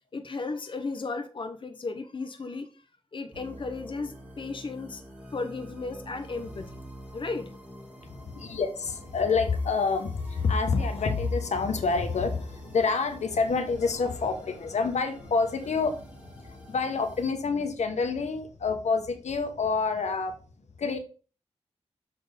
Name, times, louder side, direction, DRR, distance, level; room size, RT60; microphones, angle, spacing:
voice 1, 0.1-2.7 3.1-5.0 5.3-6.7 7.1-7.5, left 3 dB, 45° left, 6 dB, 0.8 m, -35 dB
sound 1, 3.3-17.3, right 1 dB, 10° right, 2.1 m, -48 dB
voice 2, 8.0-20.4 20.8-21.0, left 4 dB, 90° left, 7 dB, 1.1 m, -28 dB
6.6 x 4.4 x 5.1 m, 0.37 s
wide cardioid pair, 120°, 11 cm